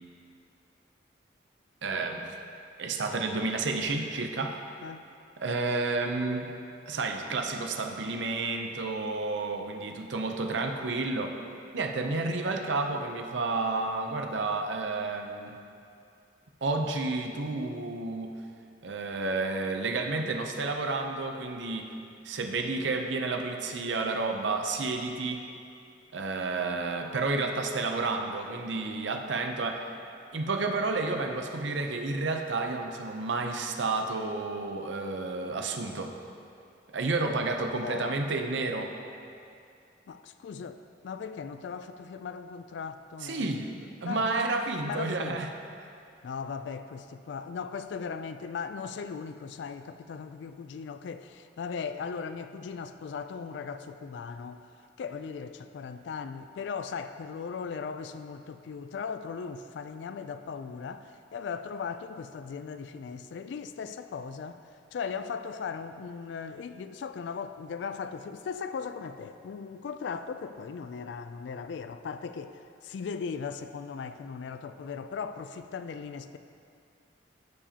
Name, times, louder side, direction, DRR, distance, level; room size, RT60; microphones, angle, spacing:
voice 1, 1.8-2.3 2.8-4.6 5.4-6.5 6.9-11.3 11.7-15.6 16.6-18.3 18.8-21.9 22.2-25.4 26.1-29.8 30.3-36.1 36.9-38.9 43.2-43.7 44.0-45.5, right 3 dB, 75° right, 4 dB, 0.6 m, -31 dB
voice 2, 37.7-38.2 40.1-40.8 41.0-43.6 44.0-44.3 44.8-45.4 46.2-54.7 55.0-64.6 64.9-76.4, left 6 dB, 70° left, 11 dB, 0.3 m, -38 dB
14.0 x 5.0 x 2.8 m, 2.5 s
head